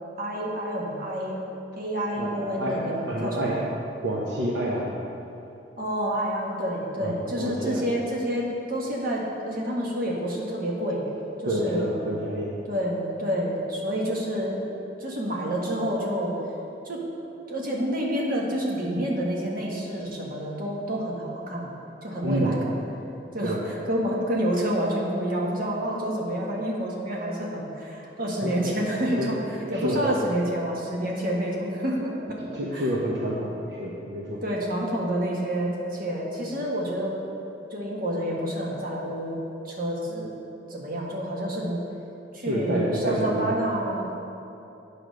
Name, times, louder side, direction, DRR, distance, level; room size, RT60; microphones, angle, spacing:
voice 1, 0.2-1.4 1.8-3.6 5.8-11.0 11.4-11.9 12.7-14.6 15.0-16.3 16.8-17.0 17.5-21.7 22.0-22.7 23.3-32.9 34.4-37.2 37.7-40.4 40.7-41.8 42.3-44.2, equal, 50° right, -3 dB, 1.5 m, -28 dB
voice 2, 2.2-3.6 4.0-4.9 7.0-7.9 11.4-12.5 22.2-22.5 23.4-23.6 28.4-28.7 29.2-29.3 29.7-30.1 32.4-34.4 42.4-43.6, right 1 dB, 70° right, -5 dB, 1.0 m, -28 dB
8.7 x 5.0 x 6.4 m, 2.8 s
head